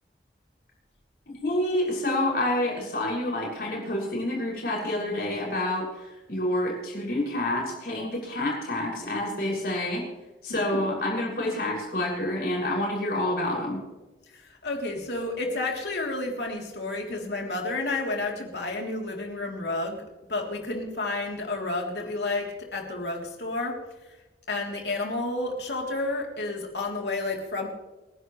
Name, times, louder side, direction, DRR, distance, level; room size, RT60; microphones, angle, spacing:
voice 1, 1.3-10.0 10.4-13.8, left 1 dB, 60° left, -3 dB, 6.7 m, -28 dB
voice 2, 14.3-20.0 20.3-23.7 24.5-27.7, left 2 dB, 75° left, 1 dB, 3.4 m, -31 dB
29.5 x 11.0 x 3.3 m, 1.1 s
head